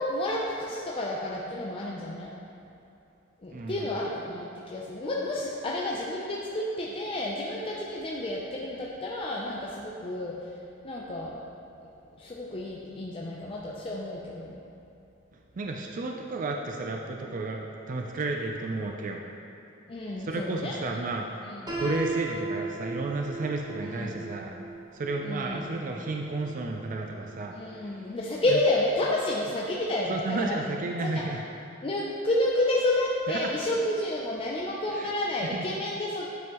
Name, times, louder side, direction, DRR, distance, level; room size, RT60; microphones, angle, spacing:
voice 1, 0.0-2.3 3.4-10.5 10.8-11.4 12.2-14.6 19.9-20.8 21.5-21.8 23.8-24.3 25.2-25.7 27.6-30.6 31.0-31.2 31.8-36.3, left 1 dB, 30° left, -4 dB, 0.5 m, -30 dB
voice 2, 3.5-3.9 15.5-19.2 20.2-21.4 21.7-24.5 24.9-27.9 28.5-28.6 30.1-31.4 33.3-33.5 34.9-35.1 35.4-35.7, right 2 dB, 40° right, 1 dB, 0.4 m, -32 dB
Piano, 21.7-27.5, right 3 dB, 20° right, 1.1 m, -38 dB
9.2 x 5.4 x 3.0 m, 2.8 s
head